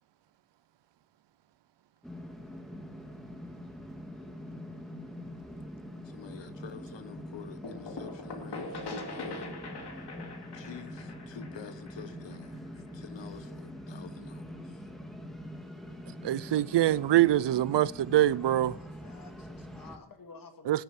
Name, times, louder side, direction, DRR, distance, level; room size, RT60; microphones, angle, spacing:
sound 1, 2.0-20.0, equal, ahead, 1.9 m, -44 dB
voice 1, 6.0-9.5 10.5-14.8, left 8 dB, 90° left, 1.4 m, -48 dB
sound 2, 7.6-13.2, left 2 dB, 65° left, 2.4 m, -42 dB
voice 2, 16.2-18.8 20.7-20.8, right 13 dB, 75° right, 0.6 m, -24 dB
voice 3, 18.6-20.8, left 4 dB, 50° left, 2.4 m, -52 dB
16.5 x 7.7 x 8.3 m
wide cardioid pair, 135°, 42 cm